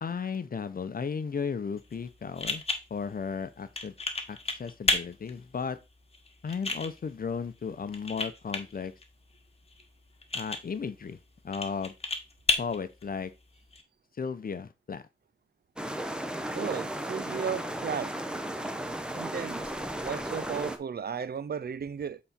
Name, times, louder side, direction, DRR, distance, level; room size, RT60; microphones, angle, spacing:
voice 1, 0.0-2.6 2.9-3.9 4.3-5.8 6.4-8.9 10.3-11.2 11.4-11.9 12.6-13.3 14.2-15.0, left 5 dB, 50° left, 0.8 m, -35 dB
gba-clip, 1.8-13.8, left 3 dB, 30° left, 1.4 m, -35 dB
sound 1, 15.8-20.8, right 1 dB, 5° right, 1.0 m, -35 dB
voice 2, 16.5-18.2 19.1-22.2, right 7 dB, 55° right, 0.6 m, -35 dB
7.9 x 4.2 x 4.2 m
wide cardioid pair, 85°, 19 cm